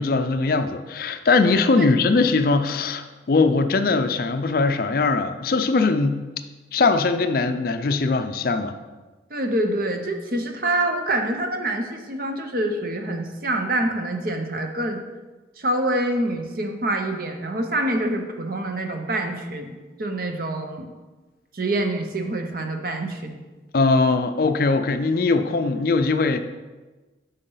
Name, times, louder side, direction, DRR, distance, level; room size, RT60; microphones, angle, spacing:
voice 1, 0.0-6.2 6.7-8.8 23.7-26.4, left 3 dB, 50° left, 9 dB, 0.4 m, -21 dB
voice 2, 9.3-15.0 15.6-20.9 21.5-23.4, right 1 dB, 50° right, 5 dB, 0.7 m, -26 dB
8.0 x 5.4 x 3.9 m, 1.2 s
head